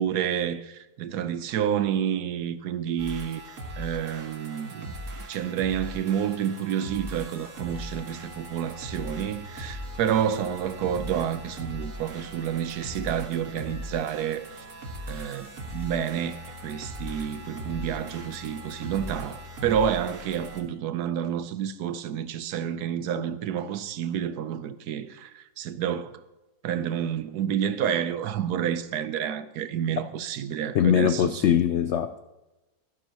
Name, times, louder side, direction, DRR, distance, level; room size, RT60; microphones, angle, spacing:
voice 1, 0.0-3.4 3.8-14.5 15.1-26.2 26.6-31.5, right 9 dB, 75° right, 1.2 m, -29 dB
sound 1, 3.0-20.6, equal, 50° right, 1.7 m, -39 dB
voice 2, 30.7-32.2, left 9 dB, 80° left, 0.6 m, -22 dB
12.5 x 11.5 x 2.9 m
omnidirectional pair, 1.8 m